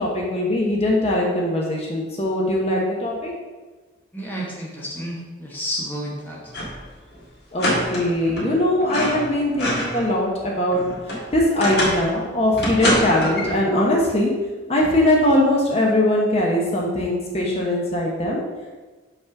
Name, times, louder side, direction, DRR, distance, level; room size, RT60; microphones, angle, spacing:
voice 1, 0.0-3.3 7.5-14.3 14.7-18.4, left 1 dB, 30° left, -2 dB, 1.0 m, -21 dB
voice 2, 4.1-6.5, equal, 10° left, -4 dB, 1.0 m, -31 dB
sound 1, 6.5-6.9 7.1-7.2 7.6-8.5 8.8-10.1 10.5-12.1 12.6-13.6, equal, 55° left, 1.8 m, -25 dB
5.6 x 4.3 x 5.9 m, 1.3 s
head